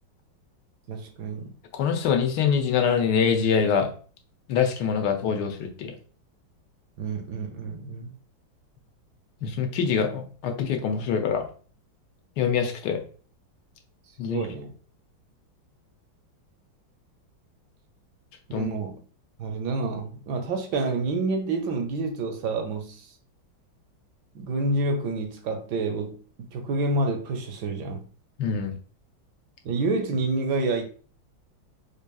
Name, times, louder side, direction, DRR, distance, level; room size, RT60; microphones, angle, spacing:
voice 1, 0.9-1.6 7.0-8.1 14.2-14.7 18.5-19.0 19.4-23.1 24.3-28.1 29.6-30.8, right 3 dB, 70° right, 1.1 m, -28 dB
voice 2, 1.7-3.9 4.5-5.9 9.4-11.5 12.4-13.0 14.2-14.4 18.5-18.7 28.4-28.7, left 6 dB, 70° left, 1.1 m, -24 dB
4.6 x 2.7 x 2.3 m
omnidirectional pair, 2.2 m